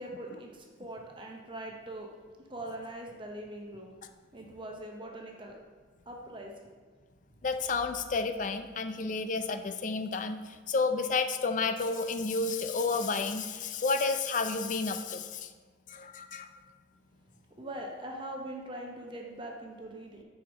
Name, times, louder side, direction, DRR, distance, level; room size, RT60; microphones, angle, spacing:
voice 1, 0.0-4.0 4.3-5.6 6.1-6.7 17.5-20.2, right 1 dB, 25° right, 1 dB, 0.8 m, -42 dB
voice 2, 7.4-15.5 15.9-16.5, left 4 dB, 40° left, 8 dB, 0.4 m, -31 dB
6.5 x 4.9 x 5.2 m, 1.5 s
head